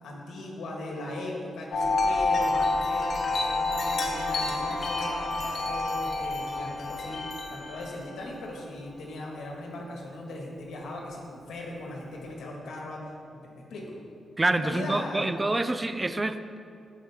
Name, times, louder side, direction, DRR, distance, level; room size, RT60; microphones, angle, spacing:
voice 1, 0.0-7.2 7.5-13.0 13.3-14.0 14.6-15.5, left 1 dB, 85° left, -1 dB, 1.9 m, -39 dB
Wind chime, 1.7-8.2, left 2 dB, 55° left, 1.2 m, -28 dB
voice 2, 14.4-16.6, right 2 dB, 15° right, 10 dB, 0.4 m, -27 dB
15.5 x 5.4 x 3.7 m, 2.4 s
wide cardioid pair, 150°, 0 cm